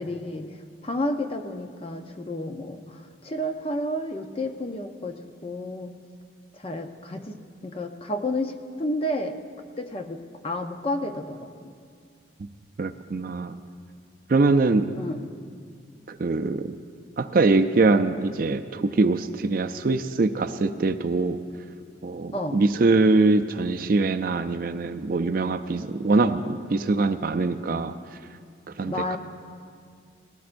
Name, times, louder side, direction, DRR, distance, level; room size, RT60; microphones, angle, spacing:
voice 1, 0.0-6.0 6.5-9.4 9.8-11.7 14.9-15.3 22.3-22.6 28.8-29.2, left 1 dB, 30° left, 5 dB, 0.6 m, -31 dB
voice 2, 12.8-13.6 14.3-14.9 16.1-16.7 17.2-21.4 22.0-28.0 28.8-29.2, right 3 dB, 50° right, 10 dB, 0.4 m, -23 dB
19.0 x 17.0 x 2.6 m, 2.2 s
head